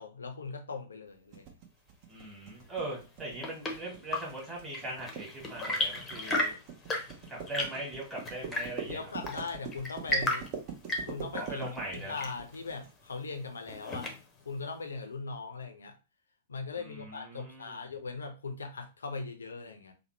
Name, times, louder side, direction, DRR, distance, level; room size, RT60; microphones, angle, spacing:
voice 1, 0.0-1.5 8.9-10.5 11.1-14.1 14.5-16.0 16.5-19.9, left 4 dB, 75° left, 5 dB, 0.5 m, -40 dB
sound 1, 1.3-12.9, right 6 dB, 40° right, 0.8 m, -43 dB
voice 2, 2.1-6.5 7.3-9.0 11.3-12.2 16.7-17.8, right 2 dB, 10° right, -4 dB, 1.5 m, -40 dB
Chirp tweet / Engine / Tap, 3.0-14.5, left 1 dB, 20° left, 0.7 m, -36 dB
3.0 x 2.0 x 3.1 m, 0.31 s
figure-of-eight pair, 105°, 0 cm